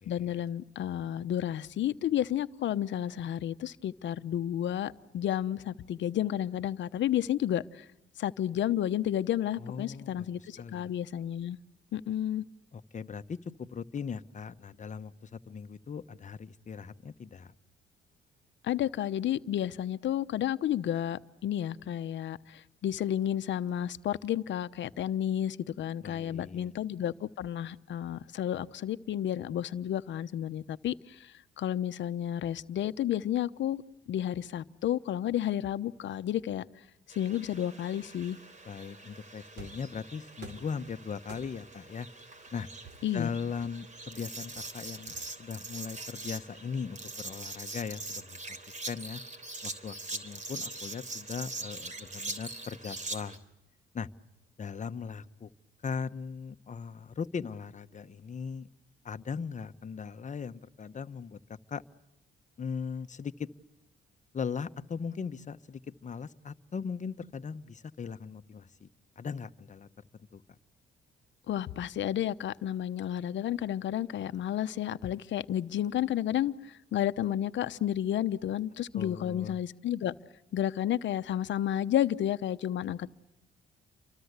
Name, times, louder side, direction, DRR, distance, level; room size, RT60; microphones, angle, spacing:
voice 1, 0.1-7.8 8.2-11.6 11.9-12.4 18.6-33.8 34.1-36.6 37.2-38.4 43.0-43.3 71.5-80.1 80.5-83.1, left 11 dB, 70° left, 12 dB, 1.0 m, -31 dB
voice 2, 9.6-10.9 12.7-17.5 26.0-26.7 38.6-42.1 42.5-42.7 43.1-49.2 49.6-53.4 53.9-54.1 54.6-55.5 55.8-58.7 59.0-61.8 62.6-63.5 64.3-68.9 69.2-69.9 70.1-70.4 78.9-79.6, left 6 dB, 40° left, 10 dB, 1.1 m, -39 dB
sound 1, 37.1-53.4, right 2 dB, 40° right, 3.4 m, -43 dB
sound 2, 39.6-39.9 40.4-40.8 41.3-41.8 42.8-44.0 44.6-45.6, right 4 dB, 60° right, 4.0 m, -50 dB
30.0 x 24.5 x 8.2 m, 0.89 s
cardioid pair, 90°, 20 cm